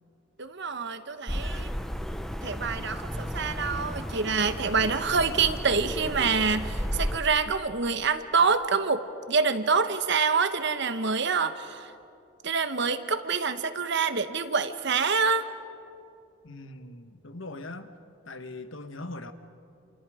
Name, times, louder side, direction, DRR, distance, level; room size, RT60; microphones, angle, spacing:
voice 1, 0.4-1.7 2.4-11.9 12.4-15.5, right 5 dB, 55° right, 10 dB, 1.2 m, -26 dB
sound 1, 1.3-7.2, equal, ahead, 0.9 m, -33 dB
voice 2, 16.4-17.9 18.3-19.3, left 2 dB, 65° left, 9 dB, 1.4 m, -40 dB
29.0 x 28.5 x 5.0 m, 2.5 s
head